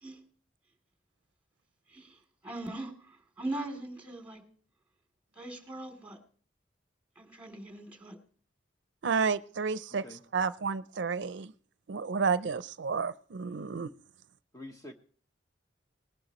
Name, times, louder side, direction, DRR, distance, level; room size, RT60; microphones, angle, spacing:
voice 1, 2.4-4.4 5.4-6.2 7.2-8.2, right 2 dB, 10° right, 2.9 m, -40 dB
voice 2, 9.0-10.0 10.3-11.5 11.9-13.9, right 5 dB, 75° right, 0.5 m, -31 dB
voice 3, 14.5-14.9, left 1 dB, 20° left, 1.0 m, -45 dB
20.5 x 11.5 x 3.0 m
head